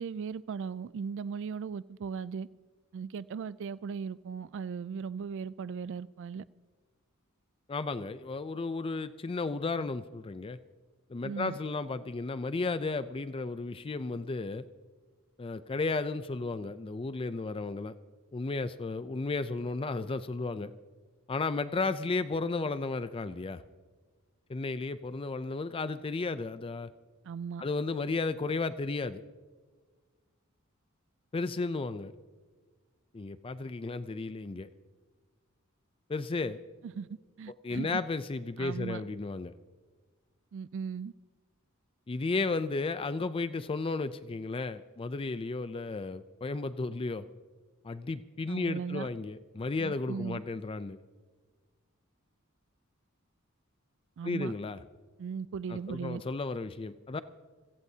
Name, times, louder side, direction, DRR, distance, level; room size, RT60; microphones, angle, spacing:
voice 1, 0.0-2.5 2.9-6.4 11.2-11.5 27.2-27.6 36.8-37.1 37.4-38.0 38.6-39.0 40.5-41.1 48.5-49.1 49.8-50.4 54.2-54.5 55.2-56.2, right 6 dB, 60° right, 18 dB, 0.3 m, -37 dB
voice 2, 7.7-10.6 11.1-14.7 15.4-17.9 18.3-20.7 21.3-23.6 24.5-26.9 27.6-29.2 31.3-32.1 33.1-34.7 36.1-36.6 37.6-39.5 42.1-47.3 47.8-51.0 54.2-54.8 55.7-57.2, left 3 dB, 25° left, 13 dB, 0.4 m, -33 dB
27.5 x 16.0 x 2.8 m, 1.4 s
head